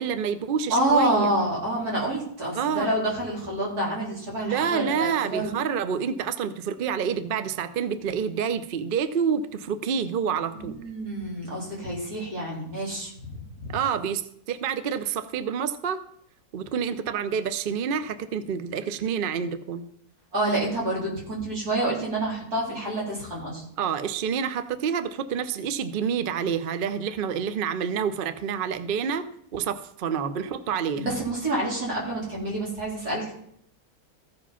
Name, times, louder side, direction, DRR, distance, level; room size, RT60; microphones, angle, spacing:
voice 1, 0.0-1.3 2.5-2.9 4.5-10.7 13.7-14.2 14.5-16.0 16.5-19.8 23.8-29.2 29.5-31.0, right 7 dB, 55° right, 12 dB, 0.6 m, -28 dB
voice 2, 0.7-5.5 10.6-13.1 13.6-13.8 20.3-23.6 31.0-33.3, right 1 dB, 85° right, -5 dB, 4.3 m, -27 dB
14.5 x 5.0 x 5.6 m, 0.68 s
omnidirectional pair, 1.6 m